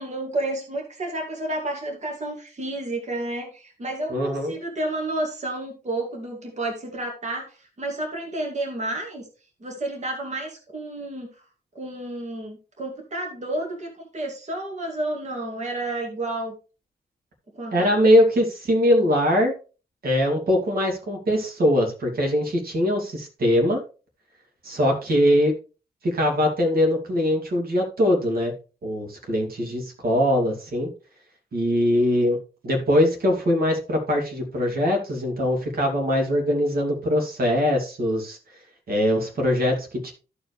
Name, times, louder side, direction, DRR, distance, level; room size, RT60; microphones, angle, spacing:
voice 1, 0.0-9.3 9.6-11.3 11.7-16.5 17.5-18.0, right 2 dB, 45° right, 1 dB, 2.3 m, -31 dB
voice 2, 4.1-4.5 17.7-19.5 20.0-23.8 24.6-25.5 26.0-28.5 28.8-30.9 31.5-32.4 32.6-38.4 38.9-40.1, left 1 dB, 65° right, 1 dB, 2.5 m, -22 dB
14.0 x 4.8 x 3.3 m, 0.34 s
wide cardioid pair, 105°, 16 cm